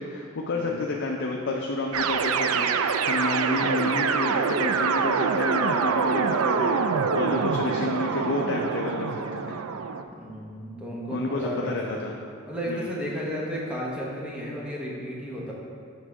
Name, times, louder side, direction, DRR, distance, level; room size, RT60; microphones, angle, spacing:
voice 1, 0.0-9.6 11.1-12.1 12.7-12.9, left 2 dB, 55° left, 0 dB, 0.5 m, -30 dB
sound 1, 1.9-10.0, right 5 dB, 80° right, 0.4 m, -25 dB
voice 2, 10.1-12.1 12.5-15.5, equal, 5° right, -5 dB, 1.1 m, -33 dB
7.3 x 3.6 x 6.0 m, 2.6 s
head